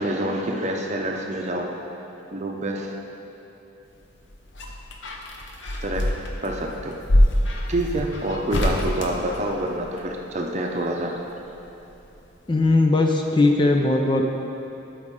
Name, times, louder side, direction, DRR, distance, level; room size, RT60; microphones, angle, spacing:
voice 1, 0.0-1.7 2.3-2.9 5.8-6.2 6.4-6.9 7.7-11.2, right 1 dB, 35° right, 1 dB, 0.7 m, -27 dB
sound 1, 4.0-10.1 11.5-12.3 12.6-12.7, left 1 dB, 65° left, 0.8 m, -25 dB
voice 2, 12.5-14.2, left 2 dB, 25° left, 2 dB, 0.4 m, -19 dB
12.0 x 5.0 x 3.7 m, 3.0 s
head